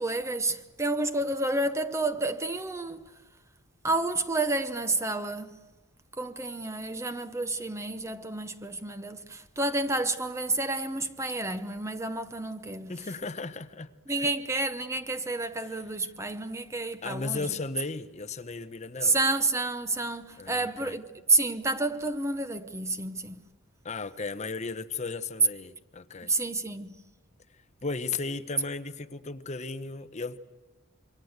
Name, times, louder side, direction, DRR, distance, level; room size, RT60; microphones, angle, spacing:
voice 1, 0.0-3.2 3.8-5.6 6.1-13.1 14.1-17.5 19.0-23.4 26.2-27.0, right 2 dB, 15° right, 0.8 m, -30 dB
voice 2, 12.9-14.3 17.0-19.2 20.4-21.0 23.8-26.3 27.8-30.4, left 4 dB, 35° left, 1.0 m, -35 dB
27.0 x 24.0 x 8.1 m
head